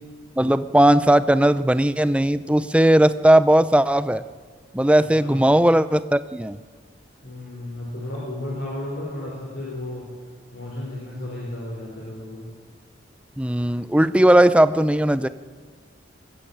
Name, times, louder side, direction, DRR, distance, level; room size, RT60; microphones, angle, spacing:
voice 1, 0.4-4.2 4.7-6.6 13.4-15.3, right 1 dB, 5° right, 13 dB, 0.5 m, -17 dB
voice 2, 7.2-10.1 10.5-12.4, left 1 dB, 65° left, -4 dB, 5.2 m, -33 dB
22.0 x 15.0 x 8.6 m, 1.5 s
head